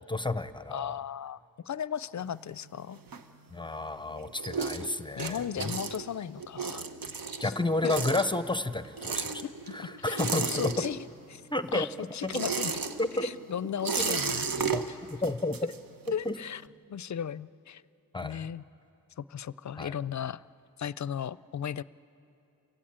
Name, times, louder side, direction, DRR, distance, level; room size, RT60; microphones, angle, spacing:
voice 1, 0.0-1.0 3.5-5.8 7.4-9.4 9.7-10.8 11.5-12.3 13.0-13.3 14.0-14.2 14.7-14.8 15.1-15.6 16.3-16.4 18.1-18.5 19.8-19.9, left 2 dB, 15° left, 12 dB, 0.6 m, -31 dB
voice 2, 0.7-3.0 5.2-6.9 7.4-7.5 7.8-7.9 9.4-11.4 11.7-12.7 13.2-15.0 16.1-16.6 16.9-17.8 18.2-18.6 19.2-20.4 20.8-21.8, left 8 dB, 55° left, 19 dB, 0.4 m, -36 dB
sound 1, 2.2-3.8 4.1-11.3 11.6-16.3, right 5 dB, 85° right, 1.1 m, -34 dB
28.5 x 16.5 x 8.7 m, 2.8 s
wide cardioid pair, 90°, 34 cm